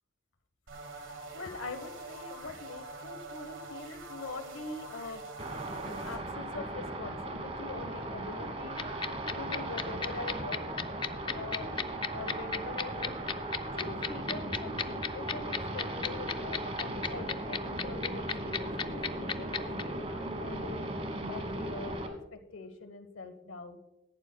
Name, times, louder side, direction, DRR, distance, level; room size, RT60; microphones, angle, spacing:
sound 1, 0.7-6.2, right 2 dB, 75° right, 1.8 m, -45 dB
voice 1, 1.0-5.2 5.8-8.8 9.4-10.7 11.3-13.2 13.8-20.9 21.2-22.0 22.3-23.8, left 3 dB, 80° left, 9 dB, 1.1 m, -43 dB
sound 2, 5.4-22.1, right 1 dB, 30° right, 1.3 m, -37 dB
sound 3, 8.8-19.8, left 6 dB, 25° left, 0.4 m, -32 dB
17.0 x 11.5 x 2.2 m, 0.94 s
head